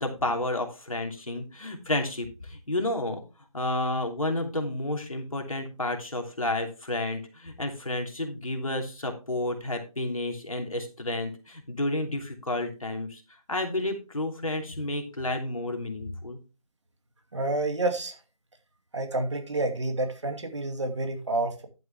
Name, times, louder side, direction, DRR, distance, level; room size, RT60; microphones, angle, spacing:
voice 1, 0.0-3.2 3.5-13.2 13.5-16.4, left 1 dB, 70° left, 3 dB, 3.0 m, -31 dB
voice 2, 17.3-18.1 18.9-21.7, right 2 dB, 55° right, 5 dB, 2.6 m, -29 dB
11.0 x 7.7 x 3.5 m, 0.30 s
figure-of-eight pair, 160°, 18 cm